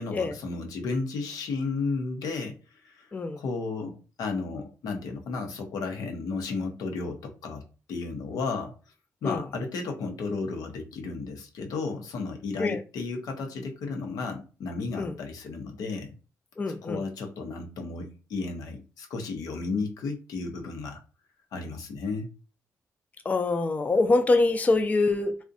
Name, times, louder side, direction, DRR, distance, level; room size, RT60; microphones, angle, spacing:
voice 1, 0.0-2.6 2.8-3.1 3.4-8.7 9.2-16.1 16.7-21.0 21.5-22.3, left 4 dB, 90° left, 0.6 m, -33 dB
voice 2, 3.1-3.4 9.2-9.4 12.6-12.8 15.0-15.1 16.6-17.0 23.3-25.4, left 3 dB, 25° left, 0.3 m, -24 dB
2.5 x 2.1 x 2.5 m
cardioid pair, 90°, 6 cm